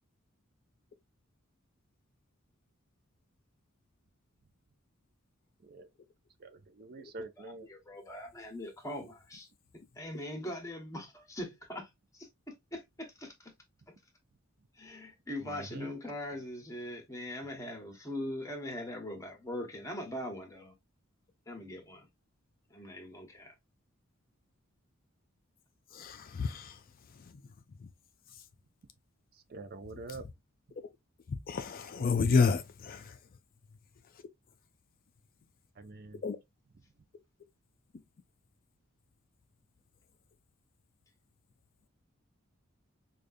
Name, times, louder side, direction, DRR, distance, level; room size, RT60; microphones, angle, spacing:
voice 1, 6.4-7.7 15.4-15.9 29.3-30.2 35.8-36.2, right 3 dB, 50° right, 0.5 m, -46 dB
voice 2, 7.4-9.5 9.7-13.5 13.9-14.0 14.7-20.7 21.5-22.1 22.7-23.5, left 1 dB, 15° left, 1.1 m, -41 dB
voice 3, 25.9-26.8 27.1-27.3 27.8-27.9 31.3-33.2 36.2-36.4, left 5 dB, 45° left, 0.4 m, -30 dB
4.9 x 2.4 x 2.5 m
head